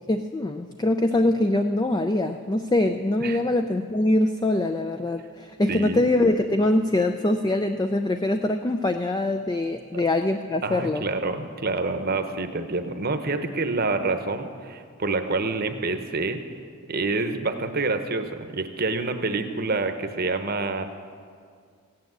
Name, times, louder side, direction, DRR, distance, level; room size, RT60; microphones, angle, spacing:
voice 1, 0.1-11.0, left 1 dB, 20° left, 6 dB, 0.4 m, -23 dB
voice 2, 5.7-6.1 9.9-10.0 10.6-16.4 16.9-20.8, right 3 dB, 45° right, 8 dB, 0.9 m, -27 dB
15.5 x 9.7 x 7.9 m, 2.1 s
head